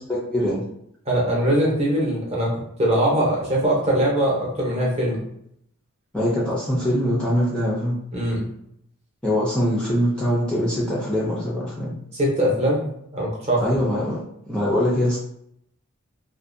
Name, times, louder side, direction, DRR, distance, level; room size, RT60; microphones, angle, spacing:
voice 1, 0.1-0.6 6.1-8.0 9.2-11.9 13.6-14.2 14.5-15.2, equal, 5° left, -7 dB, 0.4 m, -23 dB
voice 2, 1.1-5.2 8.1-8.5 12.1-12.9 13.1-13.6, right 1 dB, 30° right, -4 dB, 0.7 m, -21 dB
2.5 x 2.1 x 2.5 m, 0.72 s
head